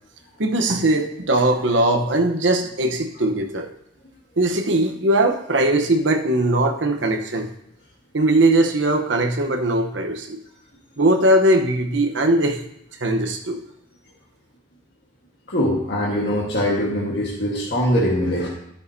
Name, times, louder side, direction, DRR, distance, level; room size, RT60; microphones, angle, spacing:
voice 1, 0.4-3.7 4.4-7.5 8.1-10.4 11.0-12.6 13.0-13.6, right 1 dB, 85° right, 4 dB, 1.0 m, -20 dB
voice 2, 15.5-18.5, equal, 65° left, -4 dB, 1.5 m, -22 dB
13.5 x 6.5 x 2.7 m, 0.76 s
head